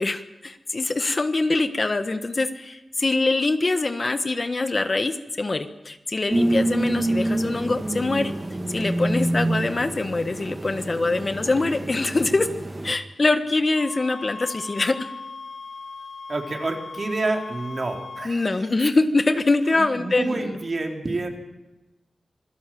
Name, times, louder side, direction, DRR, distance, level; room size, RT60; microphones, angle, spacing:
voice 1, 0.0-8.3 8.7-12.5 12.8-15.0 18.2-20.6, left 3 dB, 40° left, 9 dB, 1.3 m, -24 dB
sound 1, 6.3-12.9, right 1 dB, 25° right, 2.0 m, -27 dB
sound 2, 13.8-18.3, left 4 dB, 60° left, 0.8 m, -38 dB
voice 2, 16.3-18.7 19.7-21.3, right 2 dB, 45° right, 2 dB, 3.9 m, -29 dB
26.5 x 16.5 x 7.7 m, 1.1 s
wide cardioid pair, 80°, 0 cm